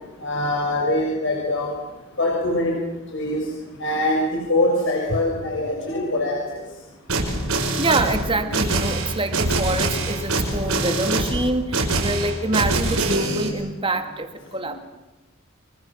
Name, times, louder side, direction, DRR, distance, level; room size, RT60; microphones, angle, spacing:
voice 1, 0.2-1.7 2.2-2.7 3.1-3.4 3.8-6.4 10.8-11.1, left 1 dB, 60° left, -1 dB, 6.6 m, -23 dB
sound 1, 7.1-13.5, right 2 dB, 85° right, 6.1 m, -24 dB
voice 2, 7.8-14.8, right 2 dB, 25° right, 7 dB, 2.4 m, -26 dB
30.0 x 25.5 x 7.6 m, 1.0 s
head